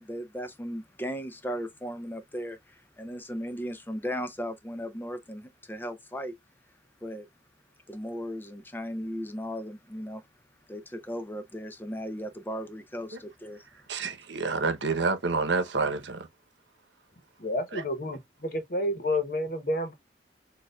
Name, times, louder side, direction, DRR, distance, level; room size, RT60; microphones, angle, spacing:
voice 1, 0.0-6.3 7.0-7.3 7.9-10.2 10.7-13.9, equal, 10° left, 0.5 m, -36 dB
voice 2, 13.9-16.3 17.7-17.8, right 4 dB, 90° right, 0.8 m, -28 dB
voice 3, 17.4-19.9, left 1 dB, 50° left, 0.9 m, -30 dB
6.5 x 2.3 x 2.3 m
head